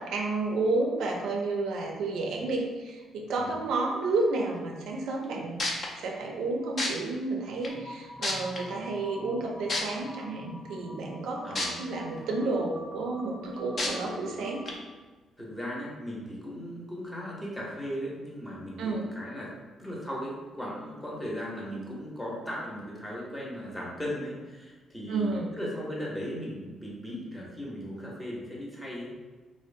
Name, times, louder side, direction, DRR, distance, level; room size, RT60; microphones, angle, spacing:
voice 1, 0.0-5.6 6.0-14.7 18.8-19.0 25.1-25.5, right 3 dB, 80° right, 0 dB, 0.4 m, -31 dB
sound 1, 5.2-5.3 5.6-5.9 6.8-6.9 7.6-7.7 8.2-8.6 9.7-9.8 11.6-11.7 12.2-12.3 13.8-13.9 14.7-14.8, left 2 dB, 45° left, 0.5 m, -28 dB
sound 2, 7.7-14.8, equal, 30° right, 0.7 m, -45 dB
voice 2, 11.4-11.9 15.4-19.5 19.8-29.1, equal, 10° left, -4 dB, 0.7 m, -37 dB
2.6 x 2.0 x 2.5 m, 1.3 s
cardioid pair, 90°, 0 cm